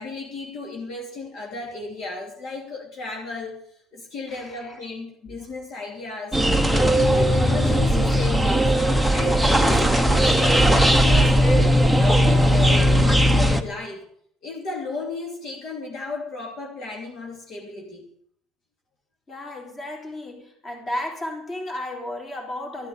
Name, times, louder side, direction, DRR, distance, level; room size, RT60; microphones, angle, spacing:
voice 1, 0.0-6.4 6.7-8.8 9.1-14.1 14.4-18.0, left 3 dB, 45° left, 2.9 m, -34 dB
voice 2, 4.3-4.8 19.3-22.9, left 1 dB, 25° left, 3.9 m, -33 dB
sound 1, 6.3-13.6, equal, ahead, 1.0 m, -18 dB
13.5 x 8.9 x 8.7 m
cardioid pair, 145°, 0 cm